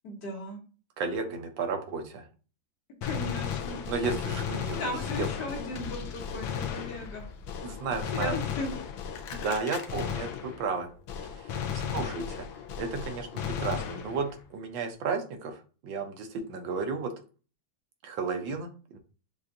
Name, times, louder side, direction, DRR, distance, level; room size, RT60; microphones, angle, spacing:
voice 1, 0.0-0.6 3.0-3.8 4.8-7.2 8.1-8.7, left 1 dB, 60° left, 1 dB, 1.5 m, -36 dB
voice 2, 1.0-2.2 3.9-4.9 5.2-5.3 7.6-8.4 9.3-10.9 11.3-12.5 12.8-17.1 18.0-19.0, right 4 dB, 75° right, 5 dB, 1.3 m, -33 dB
Gunshot gunfire, 3.0-10.8 11.1-14.4, left 8 dB, 90° left, 1.5 m, -35 dB
6.9 x 2.5 x 2.6 m, 0.37 s
omnidirectional pair, 2.2 m